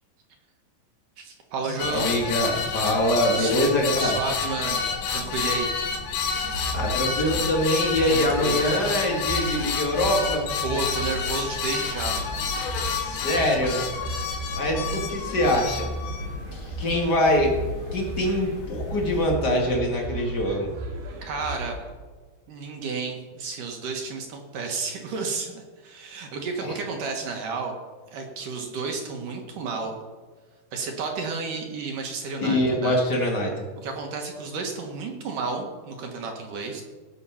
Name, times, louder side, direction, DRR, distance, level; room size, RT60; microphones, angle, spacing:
voice 1, 1.2-2.1 3.4-3.5 4.0-5.7 8.0-8.7 10.6-12.4 21.2-21.8 22.5-27.7 28.1-30.0 30.7-33.0 33.8-36.8, right 4 dB, 60° right, 3 dB, 2.5 m, -32 dB
sound 1, 1.8-19.4, left 5 dB, 80° left, 3.7 m, -30 dB
voice 2, 1.9-4.2 6.7-10.5 12.9-13.9 14.5-15.9 16.5-17.5 17.9-20.7 26.6-26.7 32.4-33.7, left 1 dB, 40° left, 0 dB, 1.4 m, -24 dB
sound 2, 6.5-21.9, right 1 dB, 80° right, 4.3 m, -36 dB
17.5 x 7.5 x 5.7 m, 1.5 s
omnidirectional pair, 4.9 m